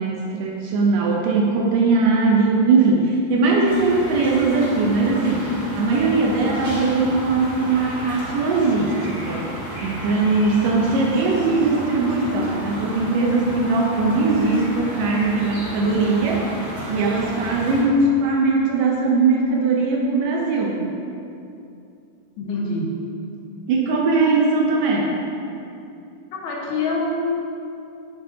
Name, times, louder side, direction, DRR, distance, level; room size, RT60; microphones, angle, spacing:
voice 1, 0.0-9.5 9.8-16.6 16.9-20.9 23.7-25.2, right 3 dB, 75° right, -1 dB, 2.1 m, -20 dB
sound 1, 3.6-17.8, equal, 35° right, 1.1 m, -33 dB
voice 2, 6.1-6.5 22.4-22.9 26.4-27.1, left 2 dB, 80° left, -3 dB, 3.2 m, -26 dB
10.0 x 9.7 x 2.8 m, 2.7 s
omnidirectional pair, 4.4 m